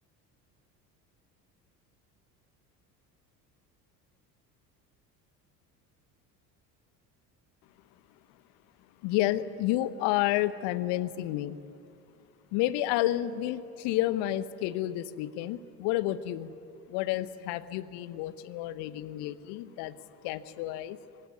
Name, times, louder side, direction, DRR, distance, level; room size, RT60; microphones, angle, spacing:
voice 1, 9.0-11.6 12.5-16.5 16.9-19.9 20.2-21.0, left 14 dB, 55° left, 16 dB, 1.1 m, -30 dB
24.5 x 18.0 x 9.5 m, 2.7 s
figure-of-eight pair, 65°, 50 cm